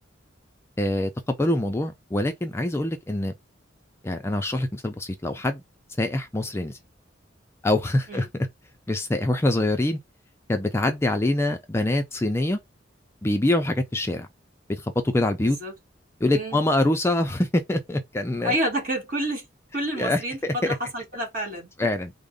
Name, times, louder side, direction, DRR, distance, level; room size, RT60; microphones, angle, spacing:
voice 1, 0.8-3.3 4.0-5.6 6.0-6.8 7.6-8.3 8.9-10.0 10.5-12.6 13.2-14.3 14.7-15.6 16.2-18.5 20.0-20.8 21.8-22.1, left 1 dB, 15° left, 0.4 m, -24 dB
voice 2, 15.4-15.7 16.3-16.6 18.4-19.4 19.7-20.4 20.6-21.7, right 1 dB, 50° right, 1.5 m, -28 dB
3.6 x 2.1 x 3.7 m
head